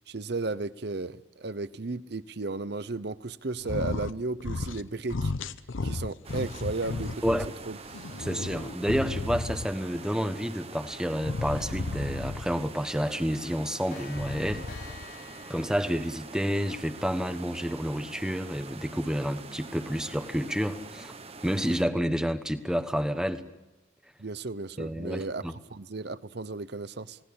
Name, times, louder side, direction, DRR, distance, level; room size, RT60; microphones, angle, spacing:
voice 1, 0.0-5.3 5.8-7.3 7.7-7.8 24.2-27.2, right 3 dB, 55° right, 15 dB, 0.8 m, -34 dB
sound 1, 3.6-4.1 4.4-4.8 5.1-7.5 7.9-9.8 11.2-12.6 14.0-15.1, left 3 dB, 80° left, 0.8 m, -34 dB
sound 2, 6.2-21.8, right 4 dB, 30° right, 1.0 m, -45 dB
voice 2, 8.2-14.7 15.5-21.1 21.4-23.4 24.8-25.6, equal, 5° right, 8 dB, 1.1 m, -29 dB
Clock, 12.0-12.1 12.4-12.6 12.9-13.0 13.3-17.3, left 5 dB, 60° left, 5.6 m, -50 dB
29.5 x 18.5 x 8.7 m, 1.0 s
head